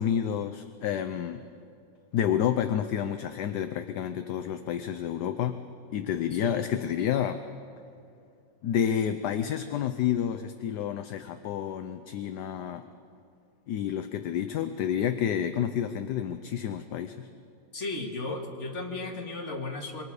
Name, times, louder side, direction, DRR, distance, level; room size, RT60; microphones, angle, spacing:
voice 1, 0.0-1.4 2.1-5.6 5.9-7.4 8.6-12.8 13.7-17.3, left 9 dB, 70° left, 8 dB, 1.3 m, -29 dB
voice 2, 17.7-20.0, left 2 dB, 40° left, 0 dB, 2.4 m, -35 dB
26.0 x 23.5 x 4.9 m, 2.5 s
omnidirectional pair, 1.9 m